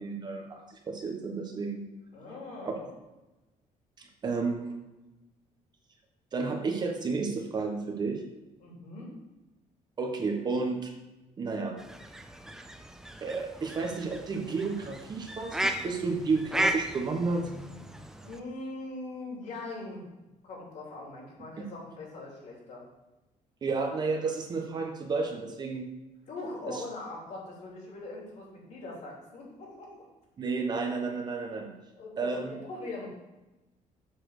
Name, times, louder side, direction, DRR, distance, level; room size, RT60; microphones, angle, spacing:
voice 1, 0.0-1.8 2.6-2.7 4.0-4.7 6.3-8.2 10.0-10.9 11.4-11.8 13.2-17.4 23.6-25.9 26.7-26.8 30.4-31.7 32.2-32.6, right 4 dB, 30° right, 2 dB, 1.0 m, -31 dB
voice 2, 2.1-2.9 8.6-9.1 18.2-20.0 20.4-22.9 26.3-30.1 32.0-33.1, left 2 dB, 60° left, -3 dB, 2.9 m, -41 dB
sound 1, 11.8-18.4, right 1 dB, 5° right, 0.5 m, -35 dB
7.6 x 4.2 x 6.5 m, 1.0 s
cardioid pair, 160°, 14 cm